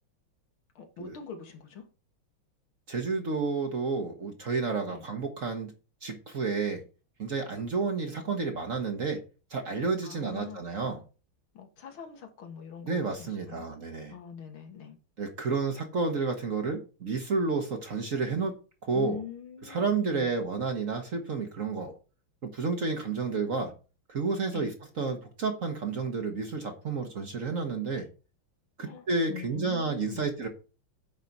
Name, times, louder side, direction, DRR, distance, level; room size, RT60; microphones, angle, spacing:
voice 1, 0.8-1.9 4.9-5.0 10.0-10.6 11.5-13.7 14.1-15.0 18.9-20.3 24.5-24.7 28.8-30.2, left 7 dB, 75° left, 2.5 m, -43 dB
voice 2, 2.9-5.7 6.0-6.8 7.2-9.2 9.5-11.0 12.9-14.1 15.2-18.5 18.8-19.2 19.7-21.9 22.4-23.7 24.1-24.7 25.0-28.1 28.8-30.5, right 4 dB, 45° right, 1.3 m, -30 dB
9.3 x 4.1 x 5.9 m
omnidirectional pair, 2.3 m